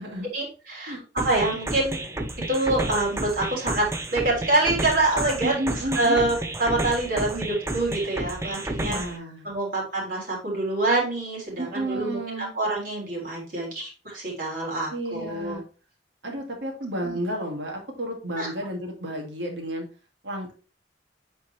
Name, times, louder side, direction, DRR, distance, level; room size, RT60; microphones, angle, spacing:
voice 1, 0.3-2.0 2.5-5.5 6.0-9.0 9.4-15.6 17.0-17.1 18.4-18.5, right 2 dB, 50° right, -3 dB, 3.6 m, -26 dB
sound 1, 1.2-9.2, right 1 dB, 15° right, 0.7 m, -31 dB
voice 2, 5.4-6.2 8.8-9.5 11.6-12.5 14.9-15.6 16.2-19.9 20.2-20.5, right 1 dB, 85° right, 1 dB, 2.2 m, -32 dB
8.5 x 4.6 x 3.2 m, 0.35 s
head